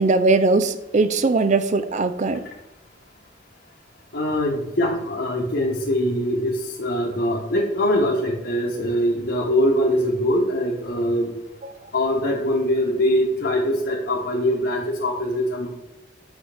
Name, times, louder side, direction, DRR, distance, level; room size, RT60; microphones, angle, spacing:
voice 1, 0.0-2.4 11.6-11.7, right 3 dB, 40° right, 12 dB, 0.5 m, -20 dB
voice 2, 4.1-11.3 11.9-15.7, equal, 60° left, -5 dB, 1.2 m, -22 dB
8.0 x 5.6 x 3.4 m, 0.99 s
head